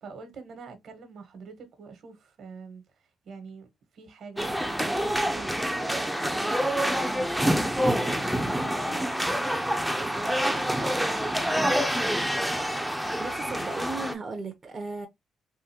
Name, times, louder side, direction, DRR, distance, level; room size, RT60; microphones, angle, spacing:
voice 1, 0.0-2.8 3.2-7.6 7.9-9.3 9.9-11.7, right 5 dB, 65° right, 1.2 m, -44 dB
sound 1, 4.4-14.1, equal, ahead, 0.6 m, -27 dB
voice 2, 13.2-15.1, right 3 dB, 35° right, 0.7 m, -36 dB
3.7 x 2.6 x 2.7 m
cardioid pair, 90°, 0 cm